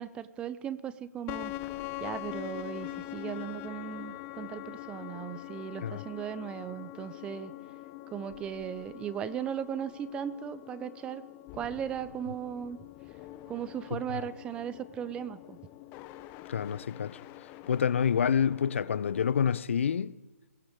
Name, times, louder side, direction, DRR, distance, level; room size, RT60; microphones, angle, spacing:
voice 1, 0.0-1.5 2.0-7.5 8.1-11.2 11.5-12.8 13.5-15.6, right 9 dB, 10° right, 0.7 m, -37 dB
sound 1, 1.3-19.6, left 16 dB, 20° left, 0.9 m, -44 dB
voice 2, 13.9-14.2 16.5-17.2 17.7-20.1, left 7 dB, 50° left, 0.9 m, -28 dB
22.0 x 18.0 x 8.8 m
figure-of-eight pair, 145°, 9 cm